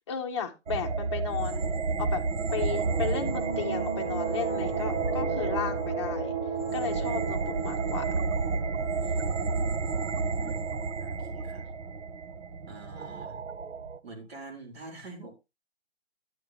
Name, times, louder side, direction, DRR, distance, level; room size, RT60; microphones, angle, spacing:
voice 1, 0.1-2.2 2.5-6.4 6.7-8.1, left 7 dB, 25° left, 1 dB, 0.7 m, -34 dB
sound 1, 0.7-14.0, right 4 dB, 85° right, 0.8 m, -31 dB
sound 2, 2.6-11.2, right 5 dB, 15° right, 2.4 m, -35 dB
voice 2, 10.1-10.6 11.0-11.7 12.6-13.4 14.0-15.3, right 3 dB, 60° right, 4 dB, 3.3 m, -46 dB
9.8 x 8.2 x 2.9 m, 0.24 s
hypercardioid pair, 170°, 35 cm